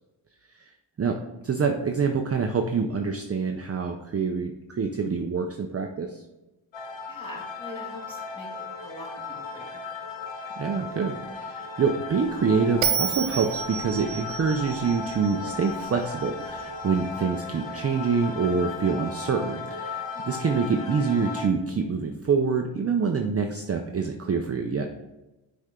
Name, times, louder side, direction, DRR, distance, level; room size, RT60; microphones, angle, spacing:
voice 1, 1.4-6.2 10.6-24.8, right 5 dB, 30° right, 4 dB, 0.5 m, -26 dB
sound 1, 6.7-21.5, left 4 dB, 70° left, 1.0 m, -36 dB
voice 2, 7.1-9.8 20.1-20.4, left 1 dB, 10° left, -4 dB, 2.1 m, -43 dB
sound 2, 12.2-17.2, right 4 dB, 70° right, 1.0 m, -46 dB
Bell, 12.8-16.1, right 8 dB, 85° right, 0.8 m, -30 dB
6.3 x 4.4 x 3.7 m, 1.0 s
cardioid pair, 80°, 48 cm